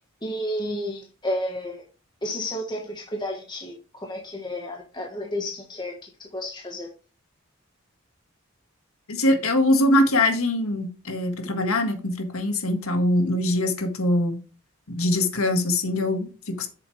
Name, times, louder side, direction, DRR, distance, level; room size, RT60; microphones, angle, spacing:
voice 1, 0.2-1.8 2.2-5.9 6.3-6.9, left 1 dB, 20° left, 1.4 m, -31 dB
voice 2, 9.1-14.4 14.9-16.7, left 1 dB, 85° left, 1.8 m, -23 dB
8.1 x 7.1 x 3.3 m
head